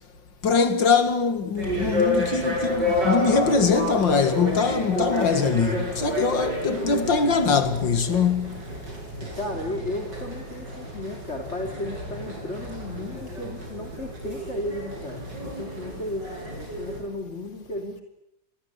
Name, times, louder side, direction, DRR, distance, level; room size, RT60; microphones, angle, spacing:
voice 1, 0.4-8.6, left 5 dB, 75° left, 2.9 m, -22 dB
sound 1, 1.6-17.0, left 1 dB, 65° right, 8.4 m, -30 dB
voice 2, 9.3-15.3 15.6-18.0, left 1 dB, 35° left, 3.3 m, -34 dB
28.5 x 23.0 x 8.3 m
omnidirectional pair, 2.0 m